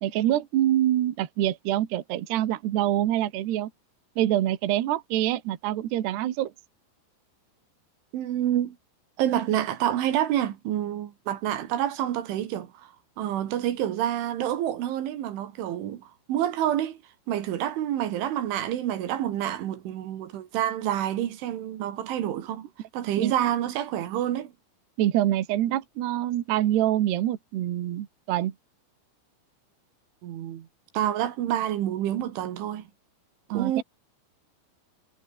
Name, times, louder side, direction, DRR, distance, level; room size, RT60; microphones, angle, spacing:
voice 1, 0.0-3.7 4.2-6.5 23.2-23.3 25.0-28.5 33.5-33.8, right 13 dB, 65° right, 3.5 m, -25 dB
voice 2, 8.1-8.8 9.2-17.0 17.3-22.7 22.9-24.5 30.2-30.7 30.9-32.8 33.5-33.8, right 11 dB, 85° right, 4.6 m, -28 dB
omnidirectional pair, 5.3 m